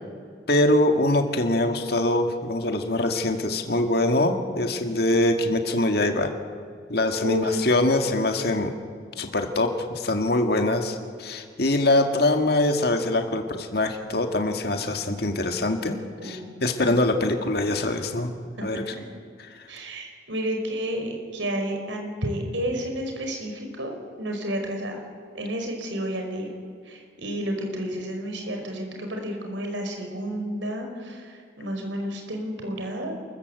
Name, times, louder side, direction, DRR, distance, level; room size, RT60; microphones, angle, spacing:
voice 1, 0.5-6.3 6.9-8.7 9.2-18.3 18.6-18.8, left 2 dB, 55° left, 5 dB, 1.9 m, -23 dB
voice 2, 7.2-7.6 16.2-16.6 18.6-18.8 19.7-25.0 25.3-26.5 26.8-33.2, equal, 85° right, 3 dB, 5.1 m, -31 dB
28.5 x 14.5 x 8.1 m, 2.2 s
head